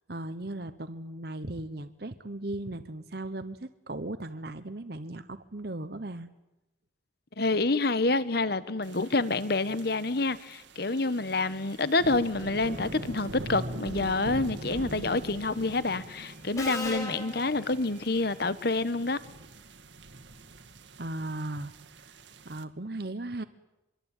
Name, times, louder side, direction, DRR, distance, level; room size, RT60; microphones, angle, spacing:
voice 1, 0.1-6.3 21.0-21.7 22.0-22.1 22.4-23.4, right 1 dB, 55° right, 1.1 m, -37 dB
voice 2, 7.4-19.2, left 3 dB, 55° left, 1.3 m, -28 dB
sound 1, 8.8-22.6, right 1 dB, 70° right, 2.0 m, -43 dB
Subway metro underground, 15.1-15.4 16.6-18.3, left 2 dB, 20° left, 4.3 m, -38 dB
25.5 x 23.0 x 9.2 m
head